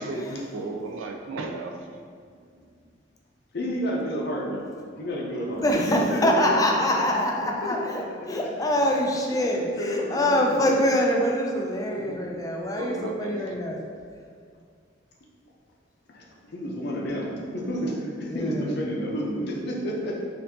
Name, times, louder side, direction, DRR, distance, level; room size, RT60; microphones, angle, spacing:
voice 1, 0.0-2.0 12.7-13.5, right 3 dB, 85° right, 3 dB, 0.4 m, -34 dB
voice 2, 3.5-6.6 7.6-8.0 8.3-8.7 9.3-11.0 11.9-12.2 16.1-20.1, equal, 60° left, -2 dB, 0.6 m, -31 dB
voice 3, 5.6-13.8 18.3-18.7, left 1 dB, 20° left, 0 dB, 0.3 m, -24 dB
4.3 x 2.6 x 2.7 m, 2.2 s
head